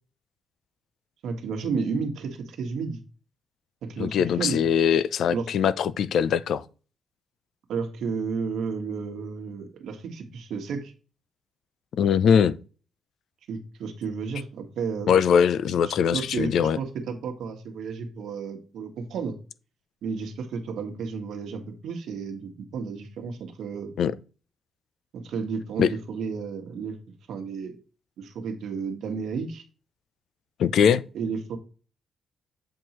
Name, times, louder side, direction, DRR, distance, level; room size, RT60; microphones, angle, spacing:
voice 1, 1.2-3.0 3.8-4.6 5.3-5.5 7.7-10.9 13.5-15.1 15.8-19.3 20.0-23.9 25.1-27.0 27.3-27.8 28.2-29.6 31.1-31.6, right 5 dB, 75° right, 1.3 m, -32 dB
voice 2, 4.0-6.6 12.0-12.6 15.1-16.8 24.0-24.1 25.8-25.9 30.6-31.0, left 7 dB, 70° left, 0.4 m, -21 dB
7.7 x 4.5 x 3.0 m
cardioid pair, 120°, 0 cm